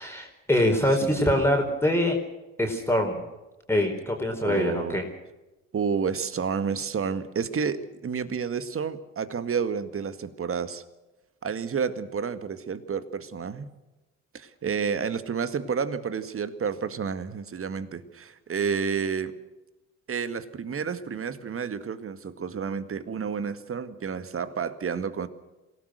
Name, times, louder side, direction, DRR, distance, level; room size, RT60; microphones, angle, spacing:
voice 1, 0.0-2.2 2.6-3.2 3.7-5.0, left 1 dB, 5° left, 1 dB, 4.5 m, -24 dB
voice 2, 1.1-1.5 4.4-5.0 5.7-10.8 11.4-13.7 14.3-19.3 20.1-25.3, right 6 dB, 35° right, 12 dB, 2.0 m, -30 dB
27.0 x 17.5 x 6.5 m, 1.0 s
figure-of-eight pair, 50°, 40 cm